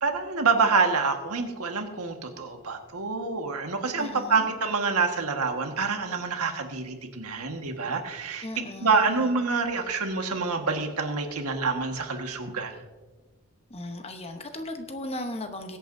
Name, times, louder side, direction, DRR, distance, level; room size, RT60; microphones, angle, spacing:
voice 1, 0.0-8.5 8.8-12.8, right 4 dB, 85° right, 4 dB, 1.5 m, -27 dB
voice 2, 4.0-4.5 8.4-9.4 13.7-15.8, left 1 dB, 30° left, 6 dB, 0.9 m, -37 dB
21.5 x 8.7 x 2.7 m, 1.2 s
head